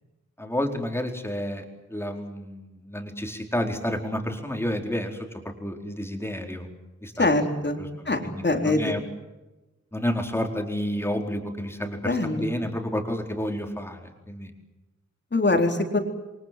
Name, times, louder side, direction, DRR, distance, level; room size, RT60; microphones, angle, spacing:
voice 1, 0.4-6.7 7.0-7.4 7.8-9.0 9.9-14.5, equal, 10° left, 3 dB, 4.5 m, -30 dB
voice 2, 7.2-7.8 8.1-8.9 12.0-12.5 15.3-16.0, left 2 dB, 35° left, 4 dB, 4.0 m, -23 dB
29.0 x 24.0 x 7.8 m, 1.1 s
wide cardioid pair, 125°, 30 cm